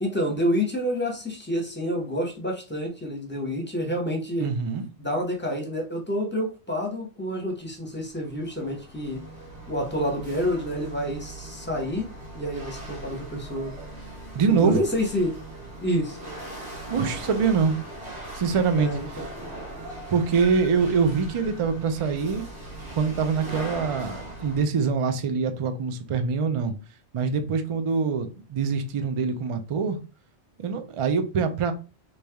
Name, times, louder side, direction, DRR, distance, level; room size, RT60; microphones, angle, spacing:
voice 1, 0.0-4.5 5.0-9.2 9.7-12.1 12.3-13.7 14.6-15.3 15.8-16.2 18.8-19.3, equal, 10° left, 0.8 m, -28 dB
voice 2, 4.4-4.8 14.3-14.8 16.9-17.7 18.3-19.0 20.1-22.4 22.9-26.7 27.1-30.0 30.6-31.7, right 5 dB, 60° right, 0.3 m, -24 dB
Chatter / Hiss / Rattle, 7.7-24.6, right 1 dB, 75° right, 1.6 m, -40 dB
3.2 x 2.7 x 3.4 m
omnidirectional pair, 1.1 m